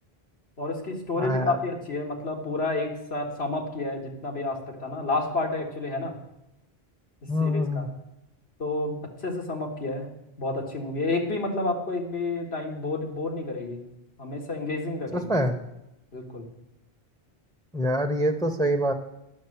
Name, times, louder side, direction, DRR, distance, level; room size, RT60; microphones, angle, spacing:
voice 1, 0.6-6.1 7.4-7.9 8.6-10.1 10.4-13.8 14.2-15.2 16.1-16.5, left 2 dB, 85° left, 0 dB, 2.2 m, -30 dB
voice 2, 1.2-1.6 7.3-7.9 15.1-15.5 17.7-18.9, equal, 5° left, 4 dB, 0.9 m, -25 dB
11.0 x 6.3 x 8.6 m, 0.85 s
omnidirectional pair, 1.0 m